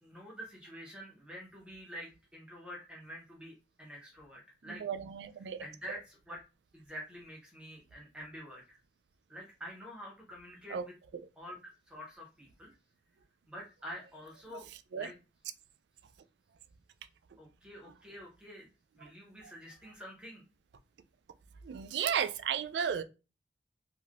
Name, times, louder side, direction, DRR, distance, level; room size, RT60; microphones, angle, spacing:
voice 1, 0.0-4.8 5.4-6.4 6.7-8.8 9.3-10.9 11.4-12.7 13.5-14.7 14.9-15.2 17.4-18.7 18.9-20.4, equal, 5° right, 0.9 m, -47 dB
voice 2, 4.8-5.6 10.7-10.8 14.9-15.1 21.6-23.0, right 8 dB, 80° right, 0.3 m, -33 dB
3.2 x 2.6 x 2.4 m
head